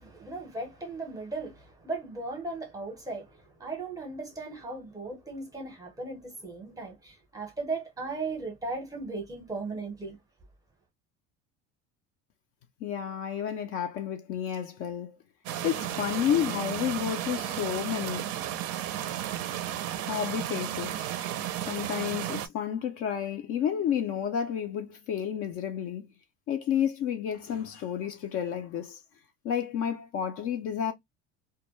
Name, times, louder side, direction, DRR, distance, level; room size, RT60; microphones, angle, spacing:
voice 1, 0.0-10.2, right 3 dB, 10° right, 0.7 m, -37 dB
voice 2, 12.8-15.2 15.6-18.3 20.1-21.3 21.7-26.1 26.5-29.0 29.4-30.9, left 9 dB, 45° left, 0.4 m, -31 dB
sound 1, 15.5-22.5, right 11 dB, 50° right, 0.4 m, -33 dB
2.2 x 2.0 x 3.0 m
cardioid pair, 155°, 31 cm